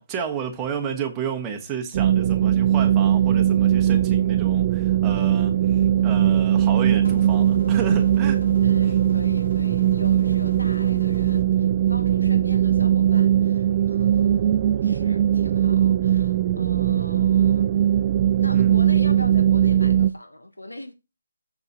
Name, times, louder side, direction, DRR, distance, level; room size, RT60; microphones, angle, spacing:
voice 1, 0.0-8.4 18.5-18.8, right 7 dB, 15° right, 1.2 m, -31 dB
sound 1, 1.9-20.1, right 11 dB, 35° right, 0.3 m, -20 dB
sound 2, 7.0-11.4, left 3 dB, 60° left, 1.2 m, -38 dB
voice 2, 8.6-17.7 18.4-20.9, left 1 dB, 90° left, 1.2 m, -41 dB
7.0 x 5.4 x 4.5 m
figure-of-eight pair, 150°, 0 cm